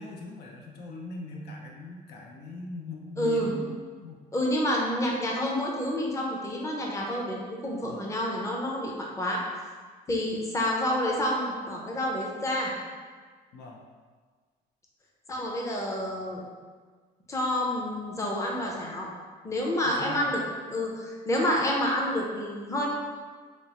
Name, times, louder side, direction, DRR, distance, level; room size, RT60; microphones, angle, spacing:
voice 1, 0.0-3.7 4.0-4.2 7.9-8.1 13.5-13.8 19.8-20.3, left 2 dB, 70° left, 0 dB, 0.5 m, -40 dB
voice 2, 3.2-3.5 4.3-9.4 10.1-12.7 15.3-16.4 17.3-19.1 19.4-20.4 20.7-22.9, left 1 dB, 20° left, -2 dB, 0.6 m, -28 dB
4.3 x 2.0 x 2.8 m, 1.5 s
cardioid pair, 110°, 17 cm